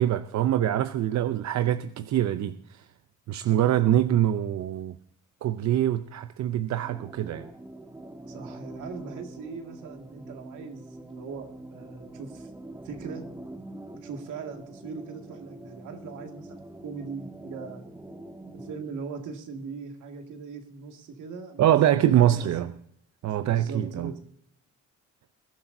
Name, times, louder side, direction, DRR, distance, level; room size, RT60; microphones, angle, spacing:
voice 1, 0.0-2.8 3.3-5.0 5.4-7.5 21.6-22.7 23.2-24.1, right 11 dB, 65° right, 0.6 m, -24 dB
sound 1, 6.8-18.8, right 1 dB, 10° right, 1.3 m, -44 dB
voice 2, 8.3-12.5 12.8-13.3 14.0-17.9 18.5-22.5 23.5-24.2, right 5 dB, 80° right, 2.2 m, -40 dB
21.0 x 12.5 x 2.7 m
cardioid pair, 90°, 30 cm